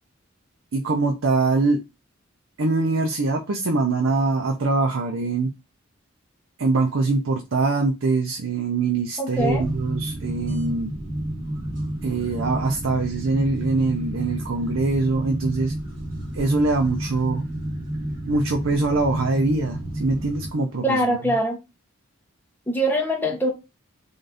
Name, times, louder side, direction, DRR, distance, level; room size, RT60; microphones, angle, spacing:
voice 1, 0.7-1.8 2.6-5.5 6.6-10.9 12.0-15.7 16.3-17.5 18.3-21.3, right 3 dB, 80° right, 0.6 m, -23 dB
voice 2, 9.2-9.7 20.8-21.6 22.7-23.5, equal, 10° left, 0.7 m, -23 dB
sound 1, 9.3-20.5, right 1 dB, 45° right, 1.6 m, -30 dB
3.9 x 2.5 x 3.3 m
head